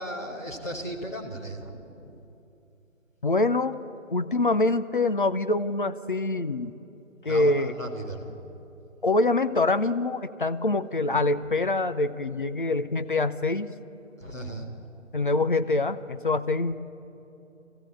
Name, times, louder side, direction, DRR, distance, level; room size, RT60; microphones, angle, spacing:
voice 1, 0.0-2.2 7.3-8.3 14.2-14.7, equal, 15° left, -4 dB, 1.3 m, -36 dB
voice 2, 3.2-3.8 4.1-6.7 7.2-7.7 9.0-13.7 15.1-16.7, left 2 dB, 40° left, 10 dB, 0.8 m, -25 dB
24.0 x 15.0 x 9.1 m, 2.9 s
figure-of-eight pair, 160°, 39 cm